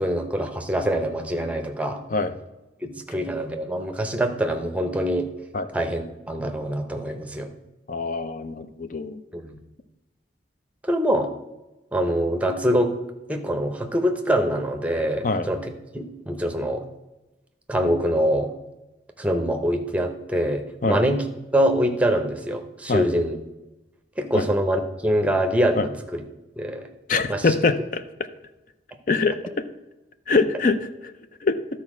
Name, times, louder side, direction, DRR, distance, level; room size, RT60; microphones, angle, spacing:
voice 1, 0.0-2.0 2.8-5.3 5.7-7.5 9.3-9.6 10.8-11.3 11.9-13.0 13.3-16.8 17.7-18.5 19.2-21.3 21.5-23.4 24.2-26.2 26.6-26.9 27.3-27.5, equal, 5° right, 6 dB, 0.7 m, -24 dB
voice 2, 7.9-9.2 15.2-15.5 20.8-21.0 22.9-23.0 24.3-24.5 25.7-25.9 27.1-28.0 29.1-29.4 30.3-30.9 31.4-31.6, left 3 dB, 45° left, 10 dB, 0.6 m, -23 dB
12.0 x 4.4 x 6.0 m, 1.0 s
head